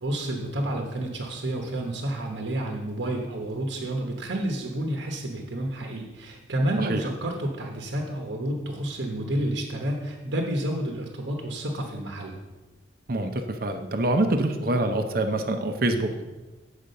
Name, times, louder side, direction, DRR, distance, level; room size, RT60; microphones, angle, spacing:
voice 1, 0.0-12.4, right 1 dB, 65° right, 2 dB, 1.0 m, -30 dB
voice 2, 13.1-16.2, right 2 dB, 50° right, 6 dB, 0.7 m, -25 dB
8.4 x 5.0 x 6.5 m, 1.2 s
head